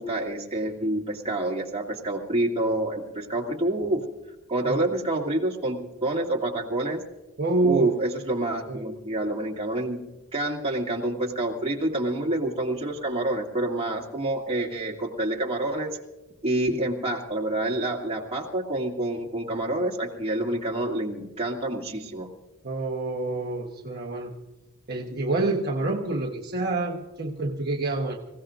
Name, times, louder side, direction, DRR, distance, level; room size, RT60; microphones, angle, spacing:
voice 1, 0.0-4.0 4.5-7.0 7.6-10.0 10.3-16.0 16.4-22.3, right 1 dB, 25° right, -1 dB, 2.4 m, -27 dB
voice 2, 7.4-7.9 8.7-8.9 22.6-24.4 24.9-28.2, right 2 dB, 45° right, -1 dB, 1.2 m, -27 dB
26.5 x 16.5 x 2.6 m, 1.0 s
head